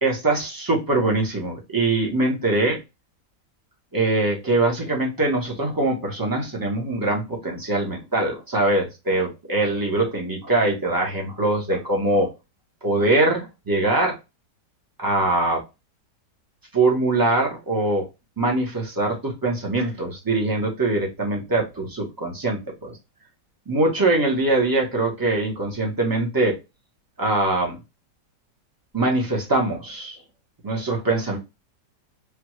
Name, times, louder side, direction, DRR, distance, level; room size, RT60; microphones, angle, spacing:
voice 1, 0.0-2.8 3.9-12.3 12.8-14.2 15.0-15.6 16.7-18.1 18.4-23.0 23.7-26.6 27.2-27.8 28.9-30.2 30.6-31.4, right 2 dB, 15° right, -1 dB, 0.7 m, -22 dB
3.5 x 2.4 x 3.0 m, 0.24 s
omnidirectional pair, 1.8 m